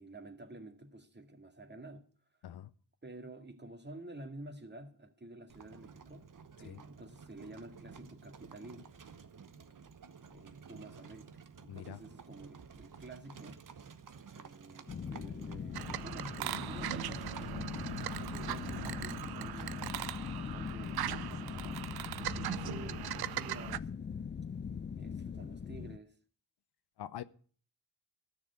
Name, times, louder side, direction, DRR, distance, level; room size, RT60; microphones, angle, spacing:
voice 1, 0.0-2.1 3.0-6.3 6.6-8.9 10.3-13.6 14.3-17.3 18.2-19.9 20.1-23.9 24.9-26.2, right 2 dB, 25° right, 2.1 m, -50 dB
Livestock farm animals working animals, 5.5-19.9, right 6 dB, 55° right, 1.1 m, -52 dB
voice 2, 11.7-12.0 16.5-16.6 27.0-27.2, left 11 dB, 75° left, 0.7 m, -44 dB
sound 1, 14.9-26.0, left 6 dB, 30° left, 0.5 m, -41 dB
sound 2, 15.7-23.8, right 12 dB, 70° right, 0.6 m, -40 dB
12.0 x 7.0 x 8.2 m
cardioid pair, 55°, 39 cm